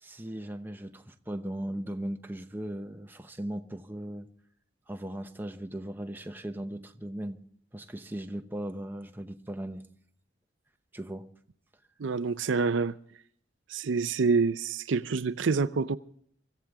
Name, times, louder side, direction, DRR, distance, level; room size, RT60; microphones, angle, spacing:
voice 1, 0.0-4.3 4.9-7.4 7.7-9.8 10.9-11.3, right 1 dB, 10° right, 0.8 m, -38 dB
voice 2, 12.0-13.0 13.7-16.0, right 4 dB, 90° right, 0.5 m, -27 dB
24.5 x 14.5 x 3.6 m
head